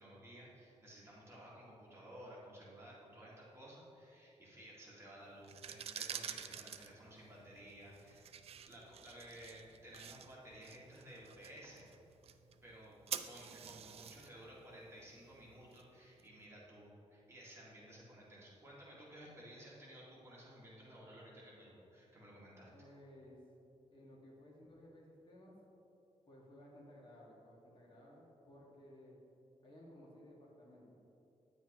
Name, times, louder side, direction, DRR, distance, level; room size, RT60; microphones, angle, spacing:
voice 1, 0.0-8.2 8.7-11.9 12.6-13.0 13.3-22.7, equal, 20° right, -6 dB, 2.0 m, -55 dB
sound 1, 5.4-16.2, right 8 dB, 60° right, 0.4 m, -49 dB
voice 2, 22.7-23.4 23.9-25.5 26.3-29.2 29.6-31.0, left 1 dB, 45° left, -4 dB, 1.7 m, -58 dB
10.0 x 7.7 x 3.0 m, 2.9 s
wide cardioid pair, 130°, 12 cm